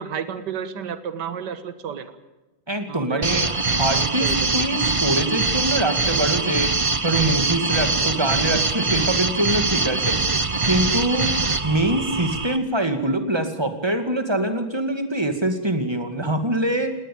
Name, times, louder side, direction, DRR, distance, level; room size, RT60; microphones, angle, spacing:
voice 1, 0.0-2.1 2.9-3.4 3.9-4.5, right 7 dB, 60° right, 12 dB, 2.0 m, -31 dB
voice 2, 2.7-3.5 3.8-6.7 7.0-10.2 10.7-11.3 11.6-17.0, right 1 dB, 15° right, 8 dB, 2.2 m, -24 dB
sound 1, 3.2-12.6, right 3 dB, 30° right, 0.6 m, -23 dB
19.5 x 19.0 x 8.7 m, 1.1 s
omnidirectional pair, 2.1 m